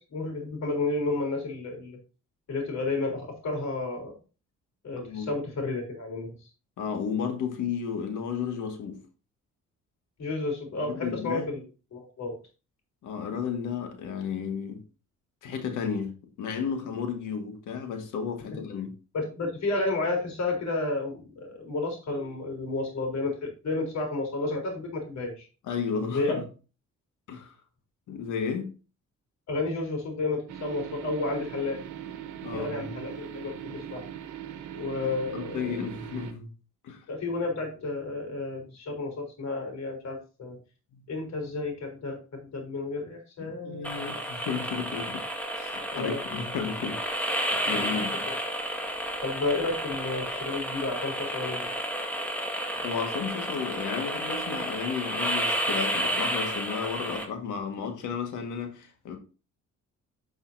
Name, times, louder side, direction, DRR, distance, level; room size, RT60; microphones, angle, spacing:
voice 1, 0.1-2.0 2.5-4.1 4.8-6.5 10.2-11.6 11.9-12.4 19.1-25.5 26.1-26.4 29.5-31.8 32.5-34.1 34.7-35.8 37.1-40.6 41.1-43.9 45.9-46.4 47.7-48.4 49.2-51.7, left 3 dB, 65° left, 3.8 m, -31 dB
voice 2, 5.0-5.3 6.8-9.0 10.8-11.5 13.0-14.8 15.4-18.9 25.7-26.4 27.3-27.5 28.1-28.7 32.4-33.0 35.3-36.5 36.8-37.0 40.9-41.1 43.4-45.2 45.5-48.3 52.8-59.2, left 6 dB, 85° left, 1.8 m, -33 dB
sound 1, 30.5-36.3, right 10 dB, 75° right, 1.3 m, -40 dB
sound 2, 43.8-57.2, right 1 dB, 5° left, 1.9 m, -31 dB
10.5 x 5.5 x 2.7 m
cardioid pair, 90°, 30 cm